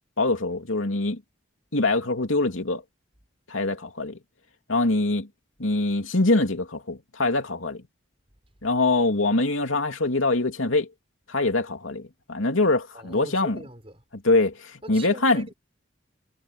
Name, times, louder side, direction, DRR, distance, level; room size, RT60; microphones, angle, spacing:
voice 1, 0.2-1.2 1.7-2.8 3.5-4.2 4.7-5.3 5.6-7.8 8.6-10.9 11.3-13.6 14.2-15.5, left 2 dB, 85° left, 2.9 m, -24 dB
voice 2, 12.9-14.0 14.8-15.5, right 1 dB, 30° right, 5.0 m, -41 dB
head